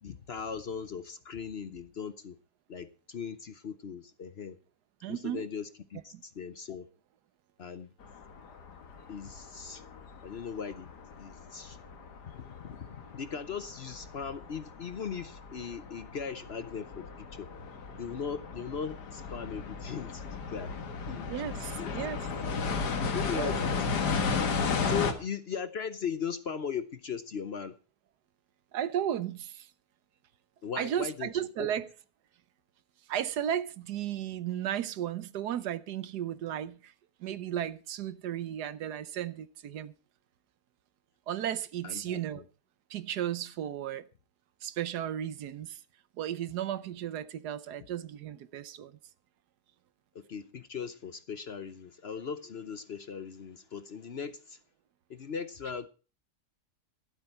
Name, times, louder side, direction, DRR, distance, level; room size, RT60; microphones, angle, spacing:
voice 1, 0.0-2.4 2.7-4.6 5.1-6.9 7.6-7.9 9.1-9.8 10.2-10.9 11.2-11.8 12.3-17.5 18.0-21.9 23.0-24.0 24.9-27.7 30.6-31.3 31.6-31.7 41.8-42.4 50.1-54.6 55.1-55.9, left 6 dB, 50° left, 0.8 m, -39 dB
voice 2, 5.0-5.5 6.1-6.2 21.2-22.2 23.3-23.5 24.8-24.9 28.7-29.7 30.8-31.9 33.1-36.9 37.2-39.9 41.3-42.5 42.9-44.1 44.6-45.8 46.2-48.9, right 10 dB, 85° right, 1.4 m, -34 dB
sound 1, 8.0-25.1, left 5 dB, 90° left, 2.1 m, -35 dB
12.5 x 12.0 x 4.4 m
omnidirectional pair, 1.7 m